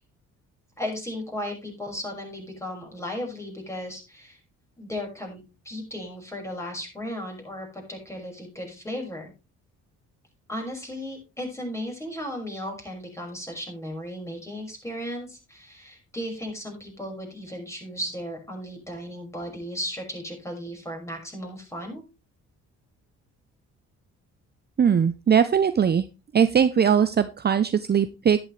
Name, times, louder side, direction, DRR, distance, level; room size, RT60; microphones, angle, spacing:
voice 1, 0.8-4.4 4.8-5.4 5.6-9.3 10.5-22.0, equal, 10° left, 1 dB, 5.8 m, -35 dB
voice 2, 24.8-26.0 26.3-28.4, right 7 dB, 35° right, 11 dB, 0.7 m, -20 dB
11.0 x 10.5 x 3.3 m, 0.28 s
cardioid pair, 90°, 30 cm